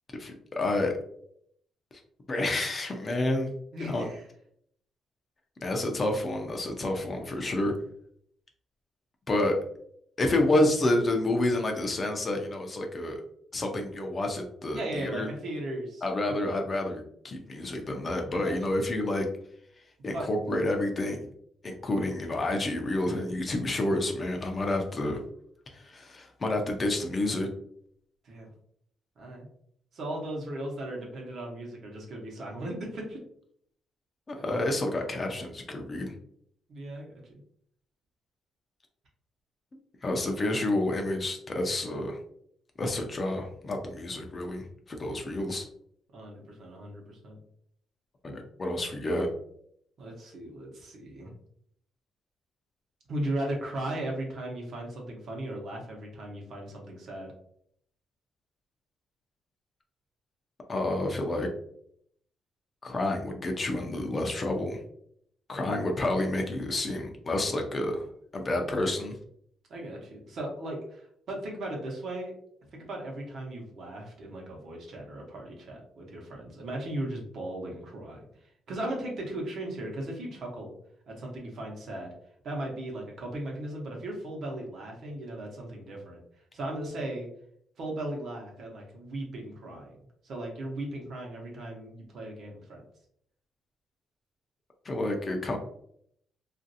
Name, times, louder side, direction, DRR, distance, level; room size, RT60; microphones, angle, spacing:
voice 1, 0.2-0.9 2.3-3.5 3.8-4.1 5.6-7.7 9.3-9.6 10.2-13.2 13.5-15.3 16.0-19.3 20.0-21.3 21.6-25.2 25.7-27.5 34.3-36.1 40.0-42.2 42.8-45.7 48.2-49.3 60.7-61.5 62.8-64.8 65.5-68.1 68.3-69.1 94.8-95.6, left 1 dB, 25° left, 3 dB, 0.4 m, -29 dB
voice 2, 3.7-4.2 14.7-16.4 18.3-18.8 20.1-20.3 28.2-28.5 29.2-29.5 29.9-33.2 34.4-34.6 36.7-37.4 46.1-47.4 50.0-51.3 53.1-57.3 69.7-72.3 72.7-80.7 81.1-82.1 82.4-86.2 86.5-87.3 87.8-90.0 90.2-92.8, right 1 dB, 55° right, 0 dB, 0.9 m, -37 dB
3.0 x 2.5 x 2.7 m, 0.68 s
cardioid pair, 160°, 0 cm